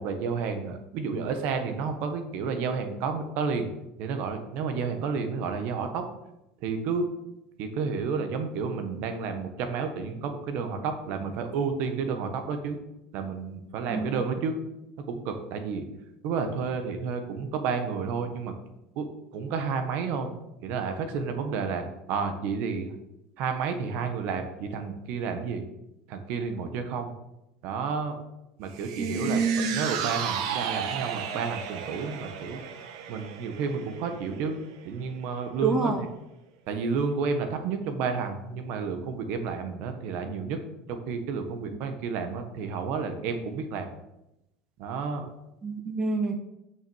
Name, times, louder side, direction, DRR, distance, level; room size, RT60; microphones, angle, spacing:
voice 1, 0.0-3.7 4.0-6.0 6.6-7.1 7.6-12.8 13.1-14.5 15.1-15.8 16.2-18.5 18.9-19.1 19.3-20.3 20.6-22.9 23.4-25.6 26.1-27.1 27.6-28.2 28.6-29.4 29.7-32.6 33.1-34.6 34.8-35.9 36.7-40.6 40.9-43.9 44.8-45.3, right 5 dB, 60° right, 6 dB, 1.4 m, -31 dB
sound 1, 28.7-35.2 35.5-35.6, right 8 dB, 80° right, 1.1 m, -34 dB
voice 2, 29.0-29.8 35.6-36.0 45.6-46.4, right 4 dB, 15° right, 4 dB, 1.0 m, -27 dB
6.5 x 6.3 x 7.2 m, 0.89 s
supercardioid pair, 140°, 3 cm